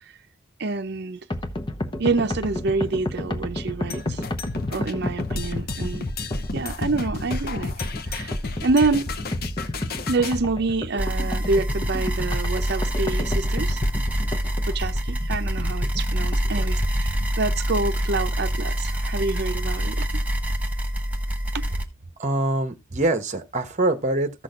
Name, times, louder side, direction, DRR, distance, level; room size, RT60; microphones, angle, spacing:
voice 1, 0.6-1.2 2.0-4.2 4.7-6.1 6.5-8.3 8.6-9.1 10.1-13.8 14.7-20.1 21.5-21.6, right 3 dB, 55° right, 0.7 m, -27 dB
sound 1, 1.3-17.3, left 1 dB, 25° left, 0.9 m, -31 dB
sound 2, 3.9-10.4, left 4 dB, 50° left, 0.7 m, -33 dB
scaryscape abrasivebackground, 11.0-21.9, equal, 10° right, 0.9 m, -26 dB
voice 2, 22.2-24.4, right 2 dB, 35° right, 1.0 m, -24 dB
15.0 x 6.2 x 2.5 m
head